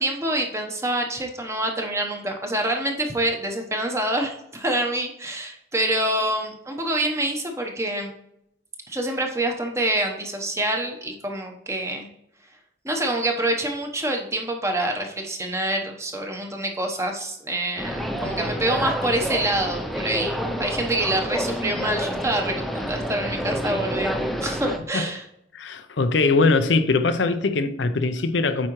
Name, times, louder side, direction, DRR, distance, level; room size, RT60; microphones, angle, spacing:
voice 1, 0.0-8.1 8.9-12.1 12.8-25.2, right 1 dB, 15° right, 0.9 m, -26 dB
sound 1, 17.8-24.8, equal, ahead, 0.5 m, -28 dB
voice 2, 25.5-28.7, left 3 dB, 75° left, 0.6 m, -21 dB
8.6 x 4.9 x 3.1 m
head